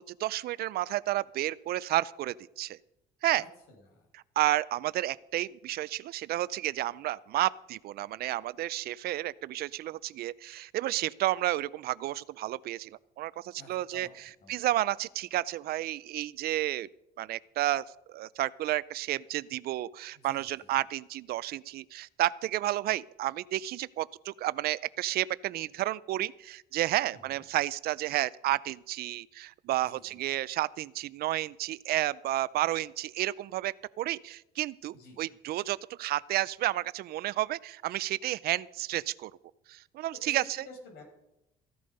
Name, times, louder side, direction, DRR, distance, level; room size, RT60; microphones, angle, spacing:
voice 1, 0.0-2.8 3.2-3.4 4.4-16.9 17.2-39.3 39.7-40.4, right 15 dB, 65° right, 20 dB, 0.5 m, -31 dB
voice 2, 3.4-4.1 13.6-14.1 14.4-14.6 20.2-20.7 27.3-27.4 29.9-30.2 34.9-35.2 40.2-40.4 40.6-41.0, left 2 dB, 75° left, 3 dB, 5.3 m, -51 dB
15.0 x 11.0 x 5.3 m, 0.86 s
cardioid pair, 110°, 17 cm